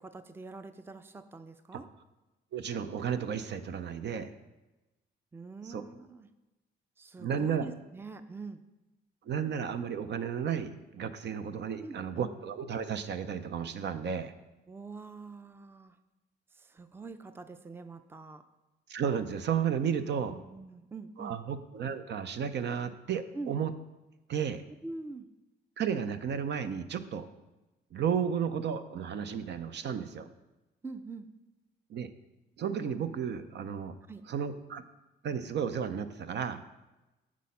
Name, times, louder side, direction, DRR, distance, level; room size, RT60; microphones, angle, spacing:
voice 1, 0.0-1.9 5.3-6.3 7.0-8.6 11.8-12.2 14.7-16.0 16.5-18.4 20.3-21.4 23.3-23.6 24.8-25.3 30.8-31.3 34.1-34.2, right 3 dB, 10° right, 10 dB, 0.5 m, -44 dB
voice 2, 2.5-4.3 5.7-5.8 7.2-7.7 9.2-14.3 18.9-20.4 21.2-23.7 24.3-24.6 25.8-27.3 27.9-30.3 31.9-32.1 32.6-33.9 34.3-34.8 35.2-36.6, right 7 dB, 60° right, 10 dB, 0.6 m, -33 dB
7.5 x 6.2 x 5.6 m, 1.0 s
cardioid pair, 90°, 20 cm